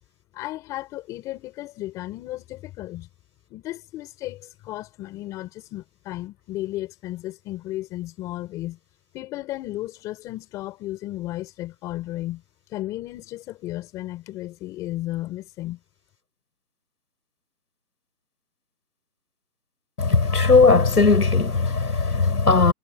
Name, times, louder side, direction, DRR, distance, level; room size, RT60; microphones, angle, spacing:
voice 1, 0.3-3.1 3.5-8.8 9.1-12.4 12.7-15.8, left 16 dB, 5° left, 7.0 m, -34 dB
voice 2, 20.0-22.7, left 4 dB, 65° left, 7.1 m, -18 dB
hypercardioid pair, 180°, 49 cm